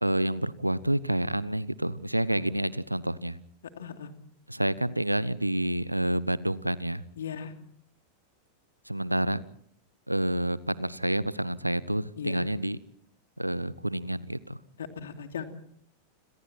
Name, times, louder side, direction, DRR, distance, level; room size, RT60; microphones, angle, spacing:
voice 1, 0.0-3.4 4.5-7.0 8.9-9.4 10.1-12.8 13.4-14.6, right 1 dB, 85° right, 20 dB, 0.9 m, -28 dB
voice 2, 3.8-4.1 7.2-7.5 12.2-12.5 14.8-15.4, left 7 dB, 65° left, 6 dB, 2.8 m, -37 dB
30.0 x 27.0 x 4.4 m, 0.66 s
figure-of-eight pair, 90°, 0 cm